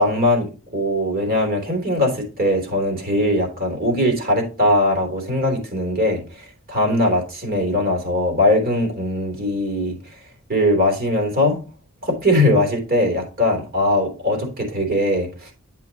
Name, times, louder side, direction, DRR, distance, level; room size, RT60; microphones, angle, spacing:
voice 1, 0.0-10.0 10.5-11.6 12.0-15.5, left 1 dB, 45° right, 2 dB, 3.2 m, -20 dB
10.5 x 5.6 x 2.9 m, 0.33 s
head